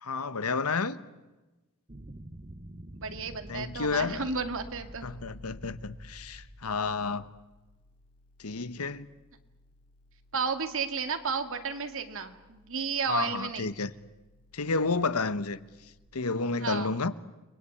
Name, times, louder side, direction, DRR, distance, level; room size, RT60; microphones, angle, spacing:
voice 1, 0.0-1.0 3.5-4.3 5.0-7.2 8.4-9.1 13.1-13.9 14.5-15.6 16.1-17.1, left 4 dB, 85° left, 1.2 m, -30 dB
sound 1, 1.9-7.6, right 1 dB, 30° right, 1.3 m, -47 dB
voice 2, 2.9-5.1 10.3-13.7 16.5-17.0, right 5 dB, 65° right, 2.2 m, -33 dB
sound 2, 4.6-16.1, left 1 dB, 25° left, 5.4 m, -62 dB
30.0 x 22.0 x 8.7 m
head